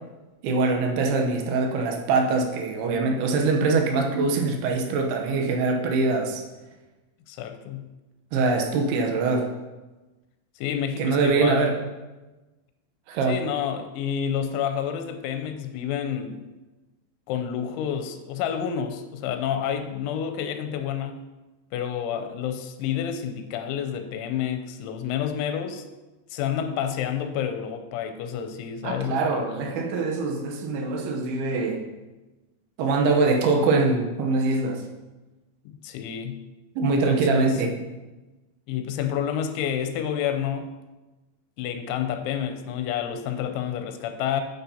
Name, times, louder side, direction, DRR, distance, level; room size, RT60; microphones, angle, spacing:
voice 1, 0.4-6.4 8.3-9.5 11.0-11.7 13.1-13.4 28.8-31.9 32.8-34.8 36.8-37.7, right 3 dB, 75° right, 2 dB, 2.5 m, -23 dB
voice 2, 7.3-7.9 10.6-11.7 13.3-16.5 17.3-21.2 21.7-25.8 26.3-29.5 35.7-36.4 36.9-37.6 38.7-40.7 41.6-44.4, left 9 dB, 85° left, 7 dB, 3.1 m, -29 dB
9.1 x 8.8 x 2.8 m, 1.1 s
omnidirectional pair, 5.4 m